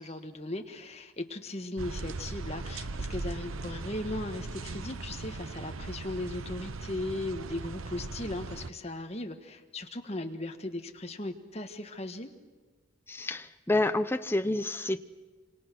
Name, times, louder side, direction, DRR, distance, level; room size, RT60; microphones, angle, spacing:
voice 1, 0.0-12.3, left 1 dB, 30° left, 6 dB, 1.5 m, -37 dB
sound 1, 1.8-8.7, right 3 dB, 80° right, 0.9 m, -39 dB
voice 2, 13.1-15.0, left 2 dB, 10° left, 9 dB, 0.7 m, -28 dB
27.5 x 26.0 x 6.2 m, 1.4 s
head